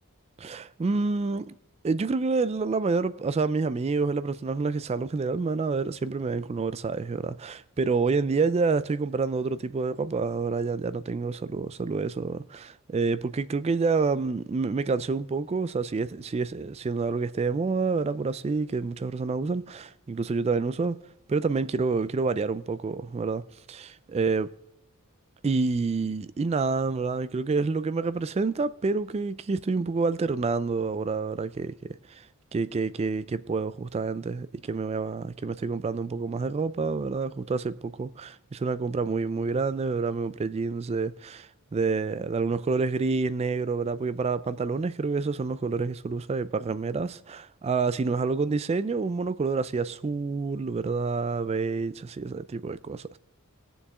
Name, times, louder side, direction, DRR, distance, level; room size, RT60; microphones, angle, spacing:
voice 1, 0.4-1.6 1.8-21.0 21.3-23.4 23.7-24.5 25.4-32.2 32.5-53.1, right 4 dB, 30° right, 0.3 m, -28 dB
19.5 x 7.0 x 3.6 m
head